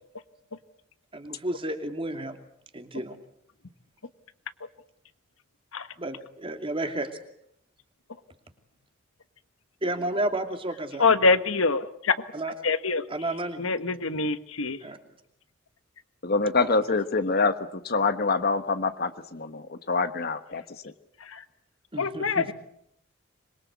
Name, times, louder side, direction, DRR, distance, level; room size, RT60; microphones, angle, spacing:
voice 1, 1.1-2.4 2.7-3.2 6.0-7.1 9.8-11.1 12.3-12.5 13.1-13.7 14.8-15.0 16.6-16.8 21.9-22.5, right 1 dB, 25° right, 6 dB, 2.6 m, -31 dB
voice 2, 11.0-11.8 12.6-13.0 13.6-14.8 22.0-22.5, left 4 dB, 80° left, 11 dB, 1.4 m, -24 dB
voice 3, 16.2-20.9, left 3 dB, 50° left, 11 dB, 1.2 m, -26 dB
25.5 x 22.5 x 8.2 m, 0.72 s
head